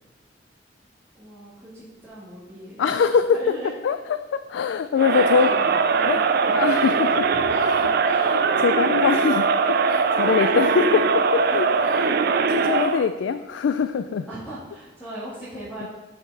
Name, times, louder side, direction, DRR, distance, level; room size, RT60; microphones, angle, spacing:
voice 1, 1.1-3.7 5.0-6.5 7.3-8.3 10.1-10.7 14.3-15.9, right 1 dB, 5° left, -12 dB, 1.9 m, -38 dB
voice 2, 2.8-3.4 3.8-5.5 6.1-6.2 6.5-7.3 7.6-7.9 8.2-8.3 8.6-11.0 11.3-12.2 12.7-14.3, left 6 dB, 85° left, 10 dB, 0.3 m, -23 dB
Crowd, 5.0-13.1, right 5 dB, 55° right, 0.4 m, -21 dB
5.9 x 5.8 x 5.4 m, 1.1 s
head